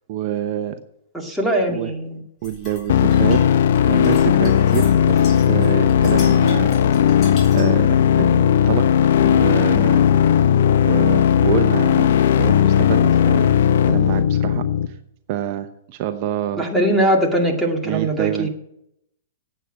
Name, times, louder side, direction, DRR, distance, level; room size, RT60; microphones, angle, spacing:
voice 1, 0.1-0.8 1.7-1.9 2.4-3.4 3.8-6.8 7.1-7.2 7.5-10.0 10.8-14.7 15.3-16.6 17.8-18.5, right 11 dB, 45° right, 8 dB, 0.8 m, -27 dB
voice 2, 1.1-2.2 16.6-18.5, right 1 dB, ahead, -2 dB, 2.1 m, -21 dB
sound 1, 2.4-7.8, left 3 dB, 30° left, 3.7 m, -38 dB
sound 2, 2.9-14.9, left 9 dB, 65° left, 0.7 m, -16 dB
9.2 x 8.3 x 8.8 m, 0.80 s
hypercardioid pair, 140°, 0 cm